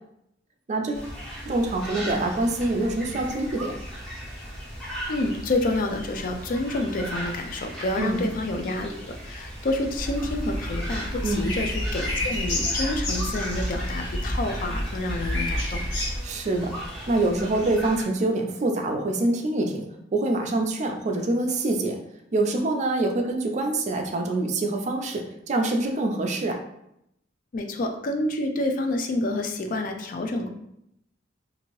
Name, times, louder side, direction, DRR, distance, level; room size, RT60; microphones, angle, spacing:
voice 1, 0.7-1.1 1.5-3.8 8.0-8.2 11.2-11.5 16.2-16.7 17.1-19.8 20.1-22.0 22.3-26.6, right 2 dB, 40° right, 3 dB, 0.4 m, -25 dB
sound 1, 0.9-18.0, equal, 5° left, 0.8 m, -37 dB
voice 2, 5.1-15.8 27.5-30.5, left 2 dB, 50° left, 4 dB, 0.4 m, -28 dB
sound 2, 9.9-16.2, left 1 dB, 90° left, 0.9 m, -29 dB
2.7 x 2.6 x 3.0 m, 0.78 s
head